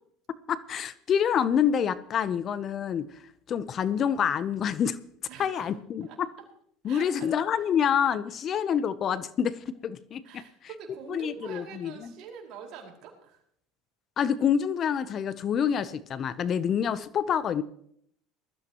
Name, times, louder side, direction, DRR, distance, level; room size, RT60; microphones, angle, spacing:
voice 1, 0.5-3.2 3.5-5.0 5.4-6.3 6.8-10.4 11.1-12.1 14.2-17.6, left 8 dB, 40° left, 15 dB, 0.8 m, -27 dB
voice 2, 5.3-5.7 6.0-6.2 6.8-7.7 10.2-13.4, right 6 dB, 60° right, 0 dB, 5.1 m, -45 dB
20.5 x 14.0 x 3.0 m, 0.68 s
supercardioid pair, 110°, 0 cm